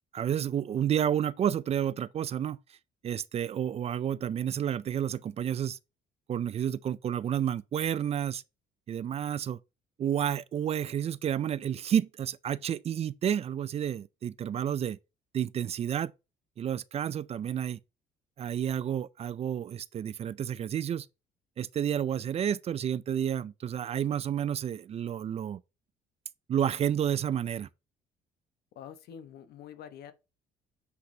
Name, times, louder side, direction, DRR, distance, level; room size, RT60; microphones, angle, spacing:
voice 1, 0.1-2.6 3.0-5.8 6.3-8.4 8.9-9.6 10.0-15.0 15.3-16.1 16.6-17.8 18.4-21.1 21.6-25.6 26.5-27.7, right 9 dB, 40° right, 0.4 m, -30 dB
voice 2, 28.7-30.1, left 9 dB, 70° left, 1.0 m, -46 dB
8.0 x 5.2 x 2.8 m
cardioid pair, 110°, 17 cm